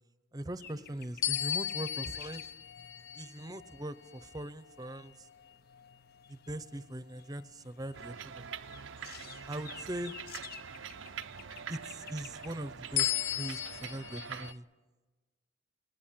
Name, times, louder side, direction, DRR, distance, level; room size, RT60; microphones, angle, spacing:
voice 1, 0.3-2.4 3.1-5.3 6.3-8.6 9.5-10.1 11.7-14.6, right 1 dB, 20° right, 14 dB, 0.8 m, -41 dB
sound 1, 0.6-14.0, left 8 dB, 50° left, 0.8 m, -54 dB
sound 2, 1.2-5.9 6.5-6.8 13.0-14.6, left 12 dB, 80° left, 0.7 m, -36 dB
sound 3, 7.9-14.5, right 7 dB, 80° right, 0.7 m, -45 dB
27.0 x 19.5 x 7.5 m, 1.3 s
head